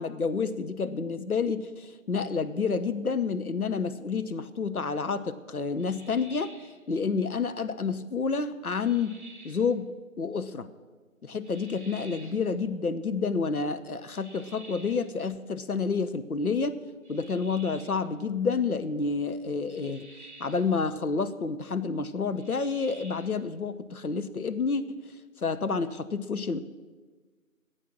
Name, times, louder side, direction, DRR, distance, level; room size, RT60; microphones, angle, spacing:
voice 1, 0.0-6.5 6.9-9.2 9.4-9.9 10.2-10.7 11.2-16.8 17.1-20.1 20.4-25.0 25.4-26.6, left 5 dB, 85° left, 12 dB, 1.0 m, -29 dB
sound 1, 5.8-6.8 8.7-9.7 11.4-12.5 14.1-15.2 17.0-18.1 19.7-20.7 22.4-23.4, right 2 dB, 50° right, 1.8 m, -51 dB
15.0 x 8.3 x 6.1 m, 1.3 s
figure-of-eight pair, 175°, 43 cm